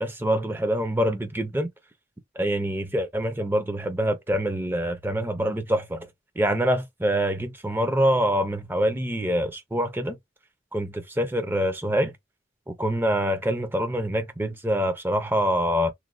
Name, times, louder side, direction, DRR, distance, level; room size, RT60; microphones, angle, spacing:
voice 1, 0.0-1.7 2.4-6.1 6.4-10.2 10.7-12.1 12.8-15.9, equal, 10° right, 0.4 m, -25 dB
3.0 x 2.1 x 2.4 m
head